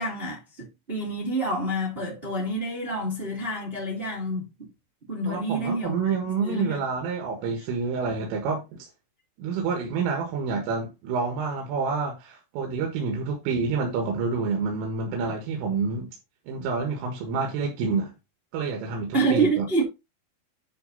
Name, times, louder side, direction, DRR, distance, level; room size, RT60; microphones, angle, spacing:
voice 1, 0.0-4.7 5.1-5.9 6.4-6.8 19.1-19.8, right 2 dB, 20° right, 1.5 m, -27 dB
voice 2, 5.3-8.9 9.4-16.2 16.5-18.1 18.5-19.8, right 4 dB, 85° right, 4.3 m, -28 dB
11.0 x 4.2 x 4.1 m
omnidirectional pair, 5.7 m